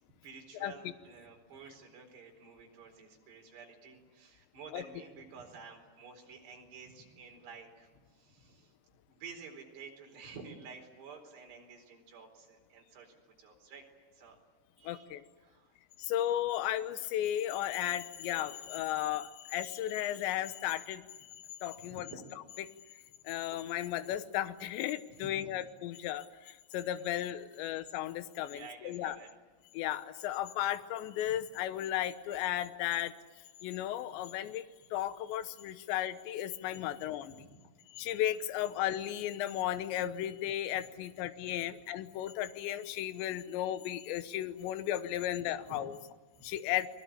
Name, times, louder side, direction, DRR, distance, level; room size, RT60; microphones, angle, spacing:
voice 1, 0.2-8.7 9.1-13.8 14.1-14.4 14.8-15.8 21.7-22.2 23.3-23.4 25.1-25.6 27.5-27.8 28.5-29.3 36.7-36.8 37.2-37.6 38.0-38.1 40.3-40.4 41.3-41.5 42.0-42.1 45.4-45.8 46.3-46.5, right 5 dB, 55° right, 2 dB, 6.3 m, -51 dB
voice 2, 14.8-15.2 16.0-21.0 21.6-22.1 23.2-29.2 29.7-33.1 33.6-34.6 34.9-37.3 37.9-46.0 46.4-46.9, left 12 dB, 75° left, 12 dB, 3.0 m, -35 dB
30.0 x 21.5 x 8.7 m, 1.3 s
omnidirectional pair, 5.7 m